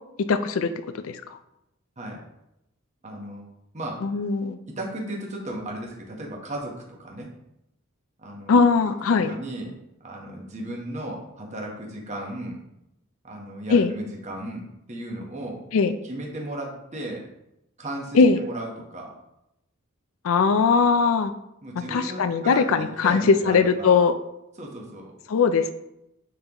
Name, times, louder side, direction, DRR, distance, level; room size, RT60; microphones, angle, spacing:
voice 1, 0.3-0.7 1.0-1.2 4.0-4.6 8.5-9.3 13.7-13.9 15.7-15.9 18.1-18.4 20.2-21.3 21.9-24.1 25.3-25.7, left 5 dB, 75° left, 10 dB, 0.4 m, -20 dB
voice 2, 3.0-3.4 3.7-4.2 4.7-7.3 8.2-8.6 9.1-9.8 10.0-12.6 13.2-15.6 16.0-17.3 17.8-19.1 21.6-24.0 24.6-25.1, right 1 dB, 35° right, -1 dB, 1.0 m, -35 dB
9.6 x 3.8 x 2.9 m, 0.85 s
head